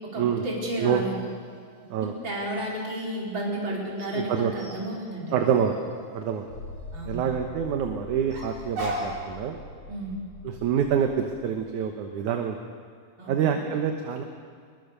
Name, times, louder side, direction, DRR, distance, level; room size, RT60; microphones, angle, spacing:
voice 1, 0.0-1.2 2.0-5.5 6.9-7.4 9.9-10.2 13.2-13.6, right 1 dB, 30° right, -3 dB, 5.4 m, -32 dB
sound 1, 1.0-3.0 4.0-7.2 8.3-9.2, right 1 dB, 80° right, 6.8 m, -39 dB
voice 2, 4.1-4.5 5.3-6.5 7.1-9.6 10.4-12.6 13.3-14.2, right 8 dB, 65° right, 5 dB, 2.4 m, -26 dB
sound 2, 6.5-11.8, left 1 dB, 45° left, 6.3 m, -43 dB
23.5 x 22.0 x 6.9 m, 2.1 s
omnidirectional pair, 4.2 m